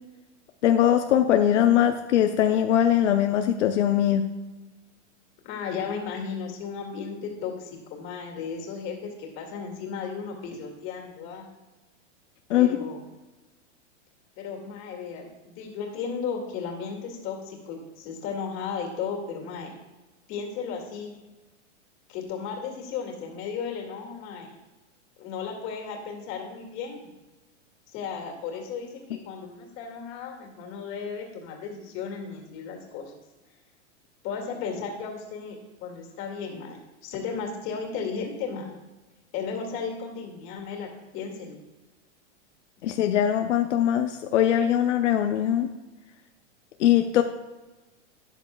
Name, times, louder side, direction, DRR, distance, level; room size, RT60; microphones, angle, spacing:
voice 1, 0.6-4.3 12.5-12.8 42.8-45.7 46.8-47.2, left 10 dB, 80° left, 6 dB, 0.7 m, -21 dB
voice 2, 5.4-11.4 12.6-13.0 14.4-19.7 20.3-21.1 22.1-24.5 25.2-27.1 27.9-33.1 34.2-38.7 39.3-40.9 41.1-41.6, left 6 dB, 35° left, 1 dB, 2.2 m, -35 dB
12.5 x 9.5 x 2.3 m, 1.1 s
supercardioid pair, 150°, 36 cm